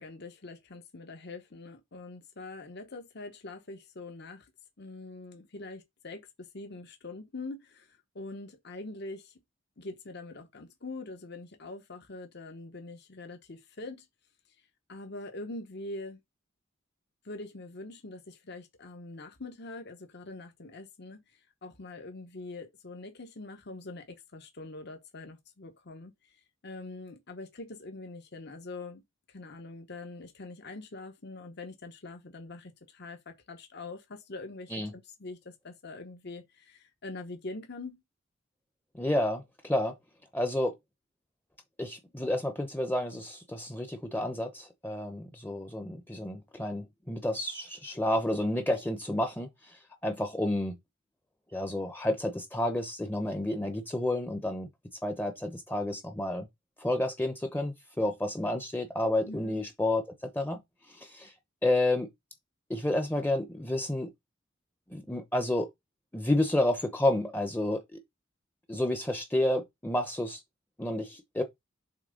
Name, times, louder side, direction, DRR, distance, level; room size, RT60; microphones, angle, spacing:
voice 1, 0.0-4.5 4.8-9.3 9.8-14.1 14.9-16.2 17.2-21.2 21.6-26.1 26.6-29.0 29.3-38.0 59.3-59.6, left 2 dB, 55° left, 1.1 m, -43 dB
voice 2, 38.9-39.9 40.3-40.7 41.8-50.8 51.5-54.7 55.0-56.5 56.8-60.0 60.3-60.6 60.9-61.3 61.6-62.1 62.7-64.1 64.9-65.7 66.1-68.0 68.7-70.4 70.8-71.4, left 1 dB, 10° left, 0.7 m, -30 dB
7.3 x 3.2 x 5.1 m
head